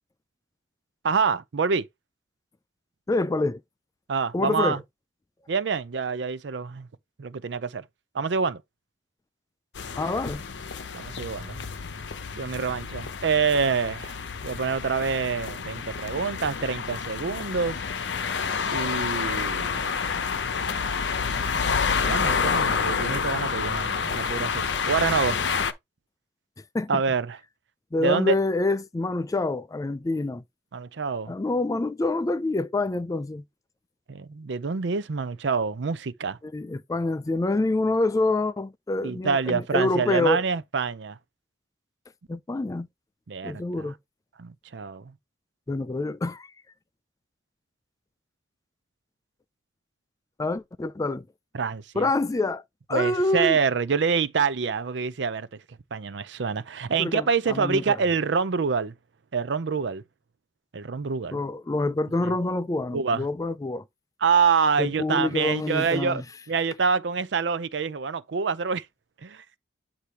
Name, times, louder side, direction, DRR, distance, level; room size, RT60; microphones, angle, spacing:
voice 1, 1.0-1.8 4.1-4.8 5.5-6.9 7.2-7.8 8.1-8.6 10.9-11.7 12.3-14.2 14.4-17.8 18.7-19.8 22.0-25.4 26.9-27.4 28.0-28.3 30.7-31.3 34.1-36.4 39.0-41.2 43.3-43.6 44.4-45.1 51.5-52.1 52.9-55.5 55.9-58.9 59.3-60.0 60.7-61.4 62.2-62.3 62.9-63.2 64.2-66.2 66.5-68.8 69.2-69.4, right 5 dB, 70° right, 0.5 m, -26 dB
voice 2, 3.1-3.6 4.3-4.8 10.0-10.4 26.7-26.9 27.9-30.4 31.3-33.4 36.4-40.4 42.3-42.9 43.4-44.0 45.7-46.5 50.4-51.3 52.0-52.6 52.9-53.6 56.9-58.0 61.3-63.8 64.8-66.3, left 2 dB, 20° left, 0.3 m, -26 dB
sound 1, 9.8-25.7, left 5 dB, 70° left, 0.7 m, -29 dB
8.4 x 2.8 x 4.5 m
head